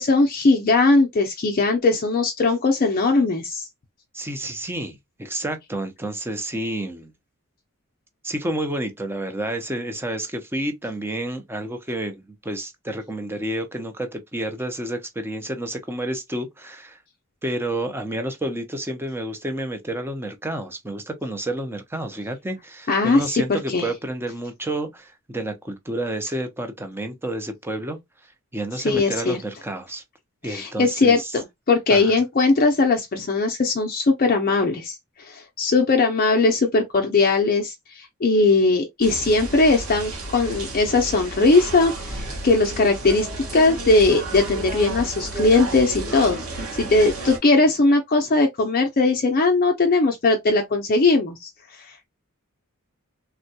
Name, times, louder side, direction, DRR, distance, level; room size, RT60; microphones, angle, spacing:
voice 1, 0.0-3.7 22.9-23.9 28.8-29.4 30.5-43.3 43.5-46.4 46.8-51.5 51.8-52.1, left 3 dB, 40° left, 0.5 m, -19 dB
voice 2, 4.1-7.1 8.2-17.0 17.4-30.0 30.4-31.3 31.9-32.2, right 1 dB, 10° right, 0.5 m, -30 dB
sound 1, 39.0-47.4, right 2 dB, 90° right, 1.2 m, -32 dB
3.5 x 2.2 x 2.7 m
head